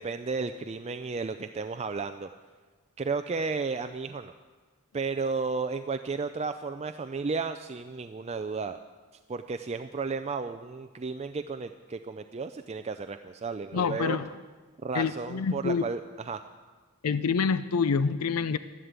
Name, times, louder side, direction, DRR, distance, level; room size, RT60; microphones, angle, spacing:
voice 1, 0.0-2.3 3.0-4.3 4.9-8.8 9.3-14.2 14.8-16.4, right 4 dB, 30° right, 8 dB, 0.4 m, -33 dB
voice 2, 13.7-14.3 14.9-15.8 17.0-18.6, left 5 dB, 85° left, 13 dB, 0.5 m, -27 dB
13.5 x 11.5 x 8.1 m, 1.4 s
head